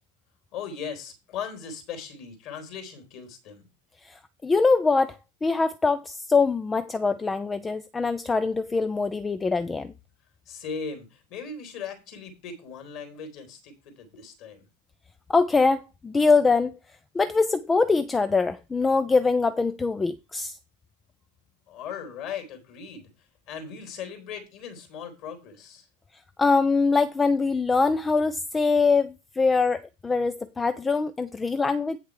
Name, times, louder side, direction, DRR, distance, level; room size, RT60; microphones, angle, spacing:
voice 1, 0.5-3.7 10.5-14.6 21.7-25.9, left 6 dB, 40° left, 3.2 m, -38 dB
voice 2, 4.0-9.9 15.3-16.8 17.1-20.6 26.4-32.0, left 4 dB, 10° left, 0.5 m, -23 dB
8.5 x 6.6 x 4.8 m
figure-of-eight pair, 90°, 0 cm